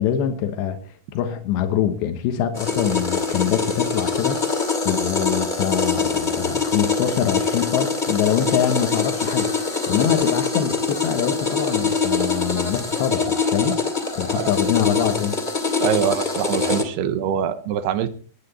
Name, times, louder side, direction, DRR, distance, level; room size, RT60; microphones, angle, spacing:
voice 1, 0.0-13.8 14.2-15.4, left 9 dB, 85° left, 3.4 m, -24 dB
sound 1, 2.6-16.8, left 4 dB, 20° left, 1.5 m, -23 dB
voice 2, 15.8-18.1, right 9 dB, 75° right, 3.1 m, -23 dB
21.0 x 10.0 x 4.2 m
omnidirectional pair, 4.9 m